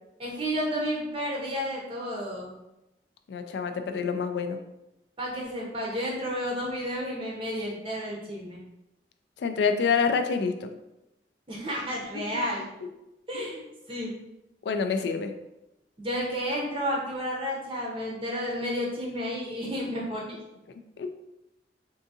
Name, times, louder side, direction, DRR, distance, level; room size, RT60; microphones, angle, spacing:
voice 1, 0.2-2.5 5.2-8.6 11.5-12.7 13.3-13.6 13.9-14.1 16.0-20.4, equal, 30° right, -3 dB, 0.6 m, -31 dB
voice 2, 3.3-4.6 9.4-10.7 12.1-12.5 13.3-13.5 14.6-15.3 21.0-21.1, left 5 dB, 70° left, 7 dB, 0.3 m, -27 dB
3.6 x 2.6 x 2.6 m, 0.94 s
head